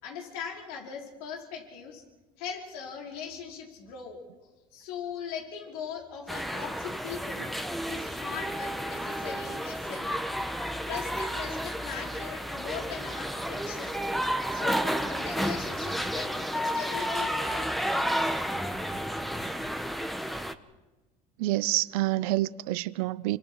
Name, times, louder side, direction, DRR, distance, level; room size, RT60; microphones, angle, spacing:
voice 1, 0.0-2.0 2.4-4.2 4.7-7.5 7.9-10.1 10.9-14.0 14.5-17.7, left 7 dB, 85° left, 5.1 m, -40 dB
sound 1, 6.3-20.5, equal, ahead, 1.3 m, -31 dB
voice 2, 21.4-23.4, right 17 dB, 85° right, 0.7 m, -27 dB
27.5 x 26.0 x 4.9 m
supercardioid pair, 90°, 18 cm